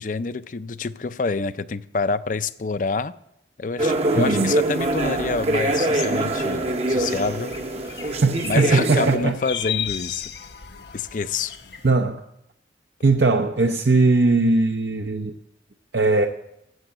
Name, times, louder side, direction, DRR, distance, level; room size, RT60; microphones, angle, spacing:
voice 1, 0.0-3.1 3.6-7.5 7.9-8.1 8.4-10.3 10.9-11.5, left 4 dB, 45° left, 0.5 m, -27 dB
sound 1, 3.8-9.2, right 2 dB, 35° right, 0.8 m, -24 dB
voice 2, 4.2-4.5 8.2-9.4 11.8-12.2 13.0-15.3 15.9-16.3, right 3 dB, 75° right, 0.8 m, -19 dB
sound 2, 4.8-11.9, left 8 dB, 70° left, 1.0 m, -36 dB
14.5 x 7.6 x 8.1 m
head